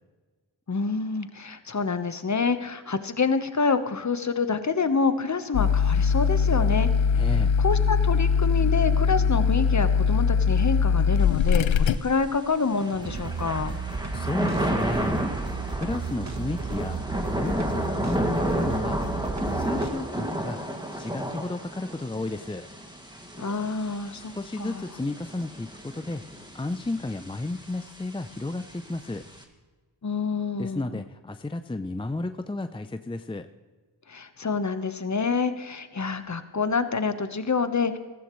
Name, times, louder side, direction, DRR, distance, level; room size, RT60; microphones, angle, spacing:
voice 1, 0.7-6.9 7.2-7.3 7.6-13.7 23.4-24.3 24.6-24.9 30.0-31.0 34.1-38.0, left 4 dB, 40° left, 10 dB, 1.2 m, -27 dB
sound 1, 5.5-12.0, left 6 dB, 90° left, 0.6 m, -21 dB
voice 2, 7.1-7.5 14.1-15.2 15.7-17.0 17.3-19.0 19.5-20.6 21.0-22.7 24.1-26.2 26.5-29.2 30.6-33.5, left 2 dB, 10° left, 9 dB, 0.6 m, -32 dB
Thunder / Rain, 11.2-29.4, equal, 10° right, 2.3 m, -32 dB
sound 2, 12.9-19.9, right 5 dB, 35° right, 1.2 m, -33 dB
15.5 x 15.0 x 3.2 m, 1.4 s
cardioid pair, 55°, 45 cm